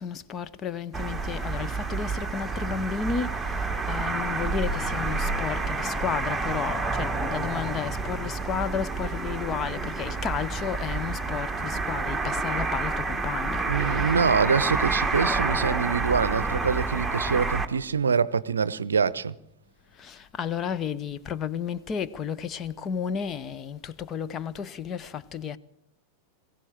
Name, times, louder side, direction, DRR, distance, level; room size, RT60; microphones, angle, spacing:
voice 1, 0.0-14.2 20.0-25.6, left 7 dB, 30° left, 0.9 m, -32 dB
sound 1, 0.9-17.7, right 3 dB, 5° right, 1.5 m, -29 dB
voice 2, 13.7-19.3, right 6 dB, 70° right, 0.7 m, -25 dB
21.5 x 16.0 x 7.5 m
figure-of-eight pair, 90°, 0 cm